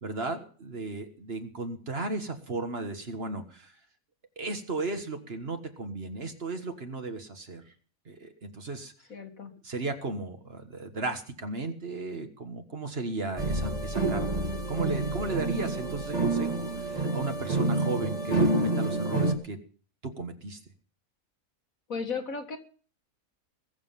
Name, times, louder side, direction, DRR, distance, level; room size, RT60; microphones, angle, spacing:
voice 1, 0.0-3.7 4.4-7.6 8.1-8.9 9.6-19.6 20.0-20.6, right 3 dB, 45° right, 6 dB, 1.7 m, -35 dB
voice 2, 9.1-9.5 21.9-22.6, left 5 dB, 65° left, 5 dB, 2.2 m, -35 dB
sound 1, 13.4-19.3, right 2 dB, 25° right, 2.1 m, -28 dB
21.0 x 7.3 x 5.7 m, 0.42 s
omnidirectional pair, 1.5 m